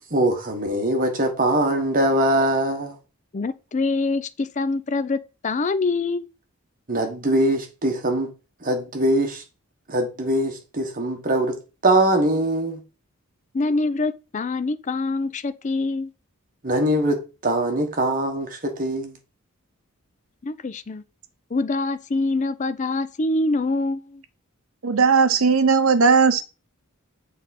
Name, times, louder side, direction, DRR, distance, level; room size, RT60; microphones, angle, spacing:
voice 1, 0.1-3.0 6.9-8.3 8.6-9.4 9.9-12.8 16.6-19.2, right 1 dB, 40° right, 1.3 m, -22 dB
voice 2, 3.3-6.3 13.5-16.1 20.4-21.0 21.5-24.2, left 3 dB, 35° left, 0.4 m, -25 dB
voice 3, 24.8-26.4, right 5 dB, 70° right, 0.7 m, -17 dB
7.2 x 3.5 x 4.2 m
head